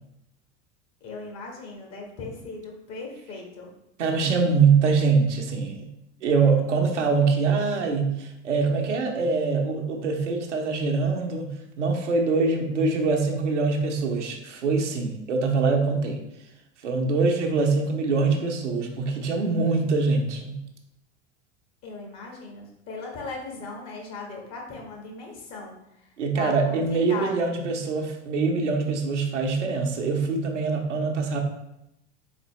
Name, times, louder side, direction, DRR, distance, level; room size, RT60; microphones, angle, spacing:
voice 1, 1.0-3.7 21.8-25.7 26.3-27.5, left 3 dB, 45° left, 0 dB, 1.4 m, -38 dB
voice 2, 4.0-5.9 6.2-16.2 16.8-20.6 26.2-31.4, right 4 dB, 85° right, 2 dB, 0.8 m, -24 dB
4.1 x 3.9 x 3.0 m, 0.84 s
hypercardioid pair, 75°, 35 cm